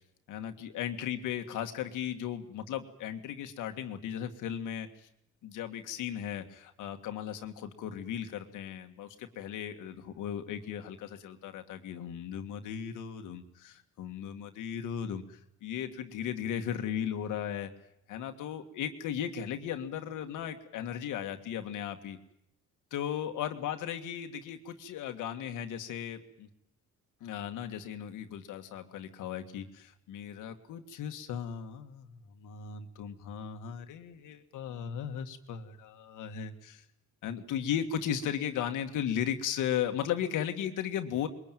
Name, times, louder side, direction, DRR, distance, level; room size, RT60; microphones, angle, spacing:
voice 1, 0.3-5.1 5.4-17.7 18.1-22.2 22.9-26.5 27.2-36.8 37.2-41.3, left 9 dB, 90° left, 6 dB, 1.9 m, -36 dB
21.5 x 21.0 x 9.2 m, 0.76 s
cardioid pair, 90°, 30 cm